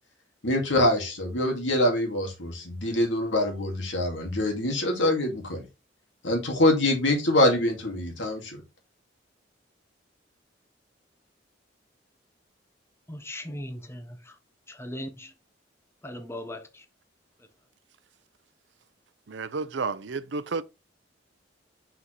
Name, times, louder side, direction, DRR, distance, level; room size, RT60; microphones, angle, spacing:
voice 1, 0.4-5.7 6.2-8.6, left 1 dB, 85° left, 2.1 m, -24 dB
voice 2, 13.1-14.2 14.7-15.3 16.0-16.6, left 1 dB, 15° left, 0.9 m, -38 dB
voice 3, 19.3-20.6, right 4 dB, 70° right, 0.6 m, -31 dB
6.0 x 5.7 x 3.1 m
head